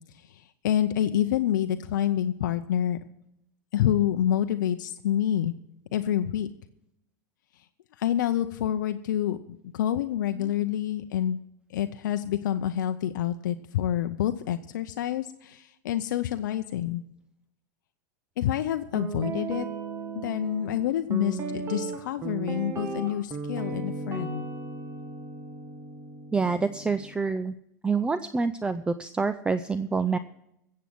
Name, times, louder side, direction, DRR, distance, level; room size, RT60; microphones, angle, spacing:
voice 1, 0.1-3.0 3.7-5.5 5.9-6.5 7.5-7.7 7.9-9.4 9.7-11.4 11.7-17.0 18.4-19.7 20.1-24.5, left 11 dB, 85° left, 9 dB, 0.6 m, -27 dB
Guitar, 18.9-27.1, right 4 dB, 25° right, 1.7 m, -36 dB
voice 2, 26.3-27.5 27.8-30.2, right 4 dB, 10° right, 12 dB, 0.4 m, -27 dB
16.0 x 7.6 x 6.0 m, 0.81 s
supercardioid pair, 125°, 10 cm